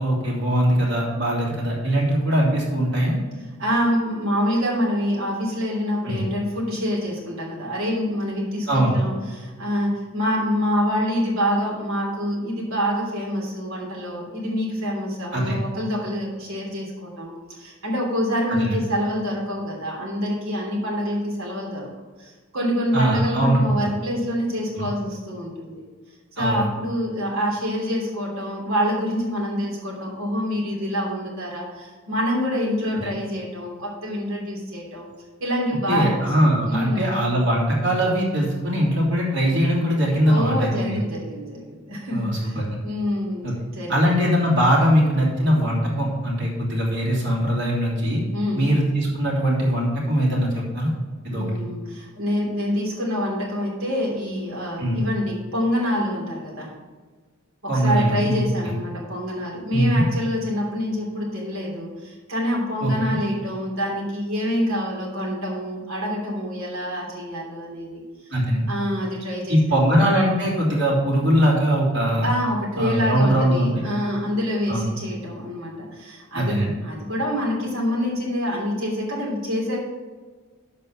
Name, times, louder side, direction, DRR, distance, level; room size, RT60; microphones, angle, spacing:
voice 1, 0.0-3.2 6.0-6.2 8.7-9.0 15.3-15.6 18.5-18.8 22.9-23.6 24.7-24.9 26.4-26.6 33.0-33.1 35.9-41.0 42.1-42.7 43.4-43.5 43.9-48.2 48.5-50.9 51.2-51.5 54.8-55.0 57.7-58.4 58.6-58.7 59.7-60.0 62.8-63.2 68.3-68.6 69.5-72.3 72.8-73.7 74.7-74.9 76.3-76.7, equal, 60° right, -4 dB, 3.0 m, -21 dB
voice 2, 3.6-21.9 22.2-25.8 26.4-35.1 35.4-36.2 36.4-37.1 40.2-43.5 43.7-43.9 48.3-48.6 51.3-56.7 57.6-68.0 68.7-69.8 72.2-79.8, equal, 80° right, -2 dB, 3.1 m, -26 dB
7.6 x 5.5 x 7.2 m, 1.4 s
head